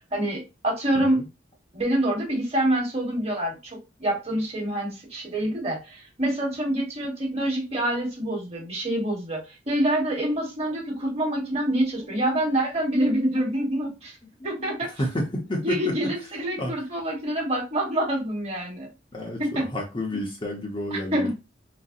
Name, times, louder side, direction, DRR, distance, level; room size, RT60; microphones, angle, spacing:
voice 1, 0.1-1.2 1.7-14.2 14.4-14.9 15.6-18.9 19.4-19.7 20.9-21.3, right 1 dB, 35° right, 1.3 m, -26 dB
voice 2, 11.0-11.5 14.4-14.7 15.0-15.9 16.5-16.7 19.1-19.4 19.7-21.3, left 1 dB, 25° left, 0.7 m, -30 dB
3.9 x 2.1 x 2.6 m
head